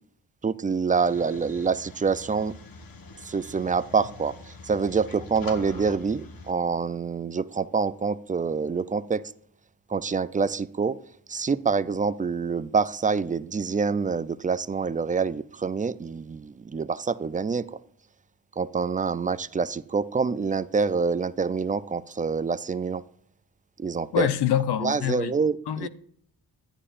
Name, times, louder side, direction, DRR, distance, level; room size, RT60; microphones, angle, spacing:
voice 1, 0.4-2.6 3.2-9.3 9.9-11.0 11.3-17.8 18.6-23.0 23.8-24.3 24.8-25.9, right 5 dB, 20° right, 0.4 m, -26 dB
sound 1, 0.9-6.5, left 3 dB, 60° left, 1.4 m, -44 dB
voice 2, 24.1-25.3 25.7-25.9, left 10 dB, 80° left, 0.8 m, -25 dB
11.5 x 9.8 x 2.5 m
cardioid pair, 75°, 39 cm